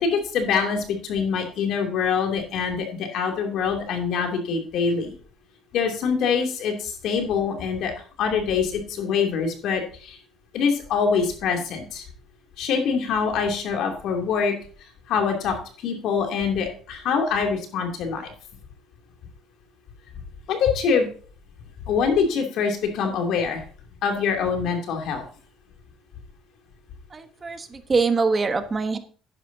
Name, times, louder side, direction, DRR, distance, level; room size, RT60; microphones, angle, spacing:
voice 1, 0.0-5.1 5.7-7.9 8.2-10.2 10.5-12.0 12.6-14.6 15.1-18.3 20.5-21.1 21.9-23.6 24.0-25.2, left 6 dB, 70° left, 3 dB, 2.8 m, -24 dB
voice 2, 27.1-29.0, right 4 dB, 30° right, 9 dB, 1.1 m, -24 dB
11.0 x 10.0 x 2.8 m, 0.41 s
cardioid pair, 95°, 0 cm